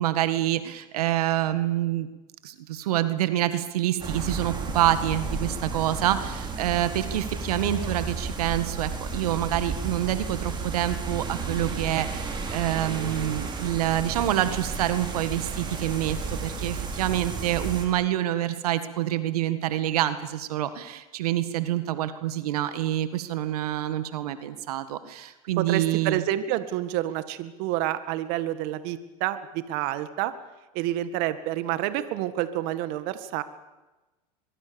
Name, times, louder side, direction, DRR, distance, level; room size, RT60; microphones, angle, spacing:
voice 1, 0.0-2.1 2.4-26.2, right 13 dB, 80° right, 12 dB, 1.9 m, -27 dB
sound 1, 4.0-17.9, right 4 dB, 25° right, 5.5 m, -33 dB
voice 2, 25.6-30.3 30.7-33.4, right 13 dB, 60° right, 12 dB, 1.9 m, -28 dB
23.5 x 23.5 x 7.1 m, 1.1 s
supercardioid pair, 110°, 19 cm